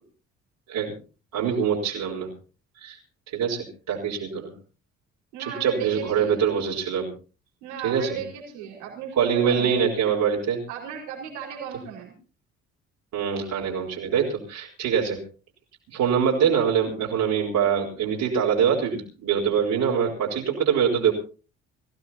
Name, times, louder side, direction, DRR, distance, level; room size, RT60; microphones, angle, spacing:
voice 1, 1.3-2.3 2.8-3.0 3.3-4.5 5.6-7.1 7.8-8.2 9.2-10.6 13.1-15.2 15.9-21.1, right 7 dB, 65° right, -4 dB, 4.2 m, -24 dB
voice 2, 5.3-6.4 7.6-9.9 10.7-12.1, right 8 dB, 80° right, -2 dB, 5.0 m, -35 dB
24.5 x 15.5 x 2.8 m, 0.35 s
hypercardioid pair, 50°, 34 cm